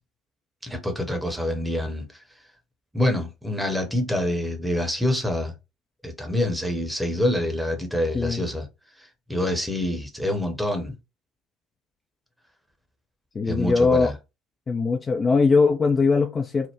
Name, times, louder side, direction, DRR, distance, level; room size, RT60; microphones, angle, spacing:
voice 1, 0.6-2.1 2.9-5.5 6.0-8.7 9.0-10.9 13.5-14.1, left 1 dB, 5° right, 0.8 m, -26 dB
voice 2, 8.1-8.4 13.3-14.1 14.7-16.7, left 4 dB, 25° left, 0.4 m, -21 dB
3.4 x 2.1 x 2.9 m
figure-of-eight pair, 60°, 0 cm